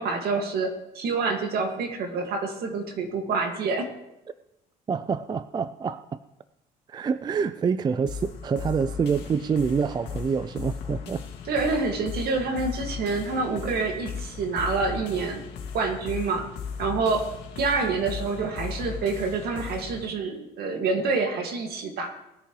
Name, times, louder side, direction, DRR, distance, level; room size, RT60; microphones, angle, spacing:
voice 1, 0.0-3.9 11.5-15.4 15.7-16.5 16.8-17.3 17.6-22.1, right 4 dB, 65° right, 2.0 m, -27 dB
voice 2, 4.9-6.2 6.9-11.2, right 6 dB, 25° right, 0.4 m, -27 dB
sound 1, 8.1-20.1, left 6 dB, 80° left, 2.1 m, -37 dB
19.5 x 10.0 x 3.1 m
cardioid pair, 110°, 17 cm